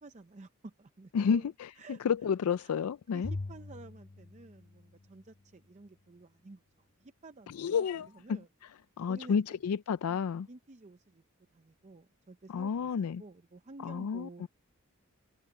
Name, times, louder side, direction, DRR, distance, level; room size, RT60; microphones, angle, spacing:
voice 1, 0.0-2.0 2.6-2.8 3.1-7.9 8.1-8.5 9.1-9.6 10.1-10.2 10.5-11.2 11.5-14.5, right 2 dB, 30° right, 0.6 m, -52 dB
voice 2, 1.1-3.3 7.5-8.4 9.0-10.5 12.5-13.2 13.8-14.5, left 6 dB, 90° left, 0.4 m, -31 dB
Bowed string instrument, 3.2-5.6, left 2 dB, 25° left, 0.6 m, -43 dB
head